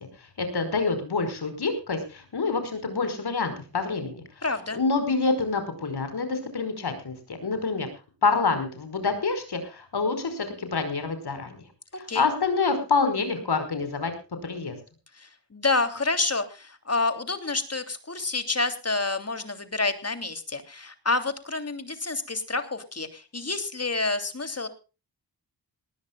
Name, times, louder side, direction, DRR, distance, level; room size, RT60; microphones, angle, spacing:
voice 1, 0.4-4.5 4.7-7.9 8.2-11.6 12.0-14.1 14.4-14.8, left 4 dB, 65° left, 9 dB, 5.2 m, -27 dB
voice 2, 4.4-4.8 12.1-12.3 15.2-24.7, left 3 dB, 35° left, 9 dB, 3.1 m, -28 dB
19.5 x 19.0 x 2.4 m, 0.33 s
cardioid pair, 60°, 41 cm